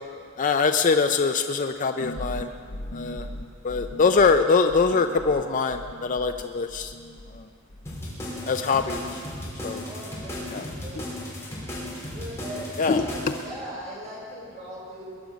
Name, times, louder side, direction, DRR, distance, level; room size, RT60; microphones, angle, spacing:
voice 1, 0.4-2.5 2.9-3.2 3.6-6.9 8.5-9.0 9.6-9.8 10.5-10.6 12.8-13.0, left 4 dB, 40° left, 7 dB, 0.5 m, -23 dB
sound 1, 2.0-7.4 7.7-8.4, left 1 dB, 75° left, 1.1 m, -39 dB
sound 2, 7.9-13.4, left 1 dB, 15° left, 4.2 m, -35 dB
voice 2, 9.8-11.0 12.1-15.0, right 1 dB, 35° right, -5 dB, 5.1 m, -39 dB
21.0 x 10.5 x 5.1 m, 2.3 s
head